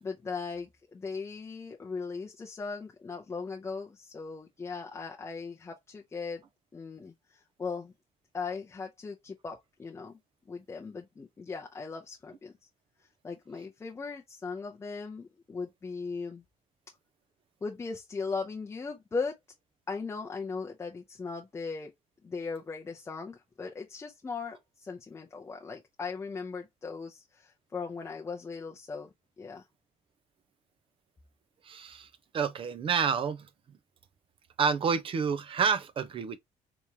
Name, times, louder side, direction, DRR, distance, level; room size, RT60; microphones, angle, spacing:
voice 1, 0.0-6.4 6.7-7.9 8.3-10.2 10.5-12.5 13.2-16.4 17.6-19.4 19.9-21.9 22.2-29.1 29.4-29.6, left 4 dB, 20° left, 0.6 m, -38 dB
voice 2, 31.6-32.1 32.3-33.5 34.6-36.4, right 6 dB, 40° right, 0.5 m, -29 dB
3.5 x 2.9 x 2.8 m
cardioid pair, 120°, 14 cm